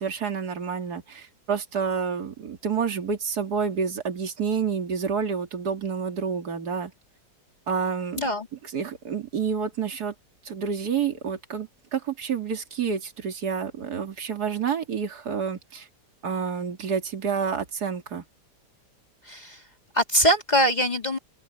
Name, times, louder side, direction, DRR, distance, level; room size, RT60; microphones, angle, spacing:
voice 1, 0.0-6.9 7.7-8.2 8.6-10.1 10.4-15.9 16.2-18.2, right 6 dB, 65° right, 2.9 m, -29 dB
voice 2, 19.3-19.6 19.9-21.2, equal, 25° left, 2.9 m, -22 dB
open air
omnidirectional pair, 1.9 m